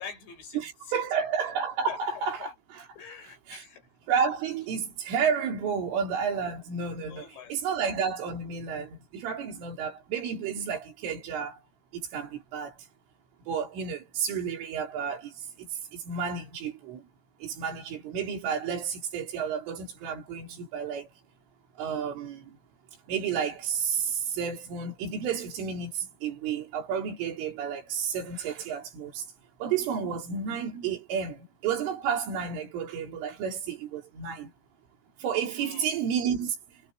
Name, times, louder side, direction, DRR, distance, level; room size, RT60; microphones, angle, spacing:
voice 1, 0.0-1.3 1.9-2.0 2.4-2.5 3.0-3.9 7.1-7.8 35.6-36.0, left 7 dB, 65° left, 8.5 m, -45 dB
voice 2, 0.5-2.9 3.5-3.6 4.1-11.6 11.9-12.8 13.5-17.1 17.4-21.1 21.8-22.6 23.1-29.3 29.6-34.5 35.2-36.6, right 7 dB, 90° right, 6.2 m, -31 dB
omnidirectional pair, 5.5 m